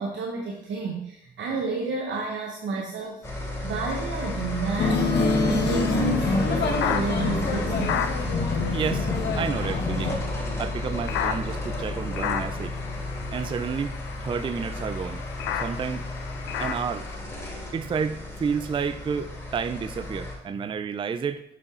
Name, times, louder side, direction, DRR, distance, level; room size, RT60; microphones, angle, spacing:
voice 1, 0.0-5.1 5.4-8.1, right 3 dB, 70° right, -1 dB, 1.2 m, -31 dB
sound 1, 3.2-20.3, left 2 dB, 15° left, 2.6 m, -33 dB
sound 2, 4.1-17.2, left 8 dB, 85° left, 0.6 m, -35 dB
sound 3, 4.8-10.2, left 3 dB, 60° left, 1.3 m, -26 dB
voice 2, 8.7-10.2 10.6-12.8 13.3-13.9 14.2-15.2 15.6-16.1 16.6-17.0 17.7-21.4, right 6 dB, 25° right, 11 dB, 0.3 m, -30 dB
7.4 x 4.8 x 3.8 m, 0.81 s
cardioid pair, 90°, 20 cm